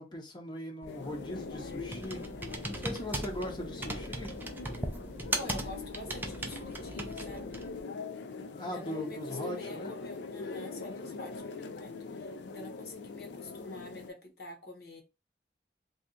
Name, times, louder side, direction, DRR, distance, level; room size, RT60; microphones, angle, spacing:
voice 1, 0.0-2.2 2.8-4.3 8.6-9.9, equal, 25° left, 0.6 m, -39 dB
Computer keyboard, 0.8-7.8, right 2 dB, 10° right, 0.3 m, -39 dB
sound 1, 0.9-14.1, left 4 dB, 85° left, 0.4 m, -42 dB
voice 2, 5.3-7.6 8.6-15.0, left 2 dB, 60° left, 0.9 m, -47 dB
2.7 x 2.3 x 3.6 m
head